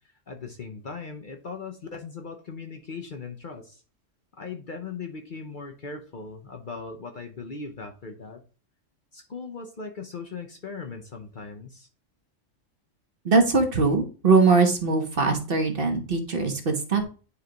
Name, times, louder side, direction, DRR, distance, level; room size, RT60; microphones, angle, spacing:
voice 1, 0.3-3.8 4.3-8.4 9.1-11.9, left 4 dB, 45° left, 5 dB, 0.8 m, -39 dB
voice 2, 13.2-17.0, right 4 dB, 50° right, 4 dB, 1.3 m, -21 dB
9.7 x 3.3 x 3.8 m, 0.36 s
omnidirectional pair, 1.3 m